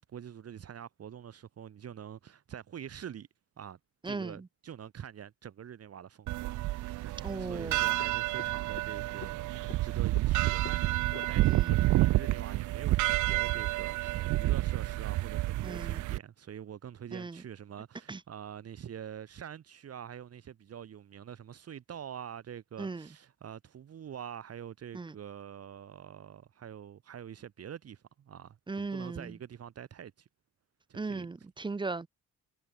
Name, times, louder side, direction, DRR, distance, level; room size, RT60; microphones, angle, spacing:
voice 1, 0.1-3.3 3.6-3.8 4.0-30.3 30.9-31.3, right 9 dB, 55° right, 2.0 m, -45 dB
voice 2, 4.0-4.5 7.2-7.9 11.4-11.7 15.6-16.0 17.1-17.4 18.1-18.2 22.8-23.1 24.9-25.1 28.7-29.3 30.9-32.1, right 3 dB, 15° right, 0.5 m, -37 dB
sound 1, 6.3-16.2, right 18 dB, 75° right, 0.5 m, -29 dB
Frog, 7.7-12.9, left 10 dB, 65° left, 2.9 m, -51 dB
cardioid pair, 90°, 30 cm